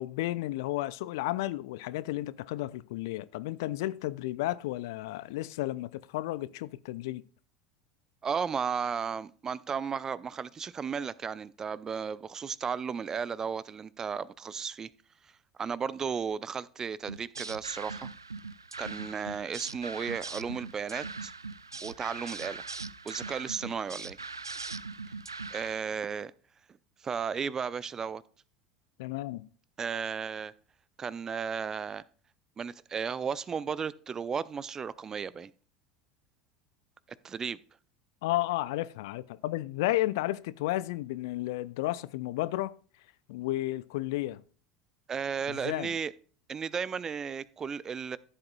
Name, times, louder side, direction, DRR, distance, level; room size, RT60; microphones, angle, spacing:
voice 1, 0.0-7.2 29.0-29.5 38.2-42.7 43.3-44.4 45.5-45.9, left 16 dB, 60° left, 0.5 m, -32 dB
voice 2, 8.2-14.9 15.6-18.1 18.8-21.3 21.8-22.6 23.0-24.2 25.5-26.3 27.0-28.2 29.8-30.5 31.0-32.0 32.6-35.5 37.2-37.6 45.1-46.1 46.5-48.2, right 6 dB, 25° right, 0.5 m, -34 dB
sound 1, 17.1-25.8, right 4 dB, 85° right, 0.3 m, -41 dB
14.0 x 7.8 x 2.3 m
figure-of-eight pair, 75°, 2 cm